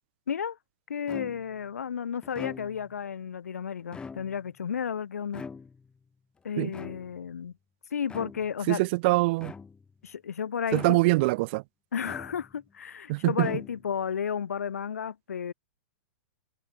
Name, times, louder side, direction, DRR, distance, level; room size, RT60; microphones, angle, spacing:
voice 1, 0.3-0.6 0.9-5.4 6.4-7.5 7.9-8.8 10.0-11.0 11.9-15.5, left 7 dB, 90° left, 1.2 m, -33 dB
sound 1, 1.1-1.6 2.2-3.0 3.8-4.6 5.3-6.0 6.7-7.4 8.1-8.6 9.4-10.0 10.7-11.3 12.0-12.7 13.3-14.1, left 5 dB, 10° left, 0.9 m, -43 dB
voice 2, 8.7-9.5 10.7-11.6 13.1-13.5, right 23 dB, 45° right, 0.6 m, -24 dB
hypercardioid pair, 130°, 8 cm